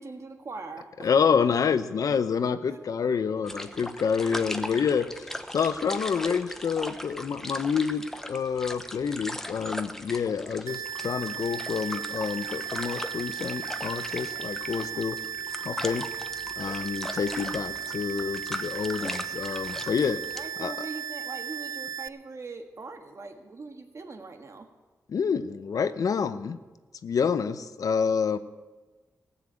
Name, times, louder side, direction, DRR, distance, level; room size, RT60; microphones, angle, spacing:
voice 1, 0.0-1.3 2.7-2.8 3.1-3.2 14.8-15.1 20.3-24.7, right 3 dB, 50° right, 5 dB, 1.6 m, -41 dB
voice 2, 1.0-5.2 5.5-15.2 15.6-16.1 16.6-20.7 25.1-26.6 27.0-28.4, left 6 dB, 70° left, 12 dB, 0.7 m, -28 dB
sound 1, 3.4-20.5, left 1 dB, 5° left, 0.9 m, -39 dB
sound 2, 10.7-22.1, right 8 dB, 75° right, 0.4 m, -36 dB
15.5 x 7.2 x 8.5 m, 1.3 s
cardioid pair, 75°, 6 cm